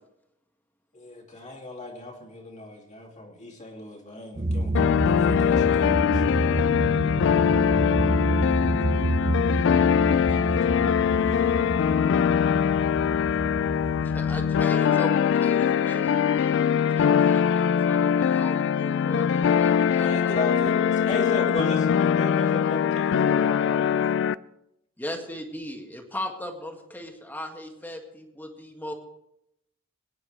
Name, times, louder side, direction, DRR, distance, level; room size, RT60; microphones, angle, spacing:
voice 1, 0.9-6.4 10.1-11.3 19.9-24.1, left 2 dB, 35° left, -1 dB, 2.5 m, -36 dB
sound 1, 4.4-14.6, right 1 dB, 30° right, 0.7 m, -29 dB
sound 2, 4.7-24.3, left 8 dB, 60° left, 0.3 m, -22 dB
voice 2, 7.7-9.4, right 1 dB, 65° right, 4 dB, 1.5 m, -45 dB
voice 3, 14.0-16.7 17.0-20.3 20.7-21.0 25.0-28.9, left 1 dB, 10° left, 2 dB, 1.8 m, -38 dB
21.0 x 9.9 x 3.3 m, 0.81 s
head